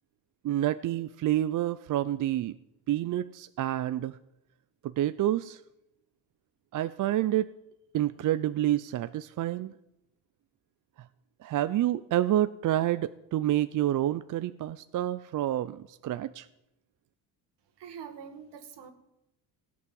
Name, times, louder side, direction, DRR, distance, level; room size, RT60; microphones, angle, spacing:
voice 1, 0.4-2.6 2.9-4.2 4.8-5.6 6.7-7.5 7.9-9.7 11.4-16.5, right 13 dB, 45° right, 14 dB, 0.5 m, -28 dB
voice 2, 17.8-18.9, right 7 dB, 65° right, 8 dB, 2.2 m, -44 dB
17.0 x 8.6 x 7.5 m, 0.88 s
cardioid pair, 115°, 45 cm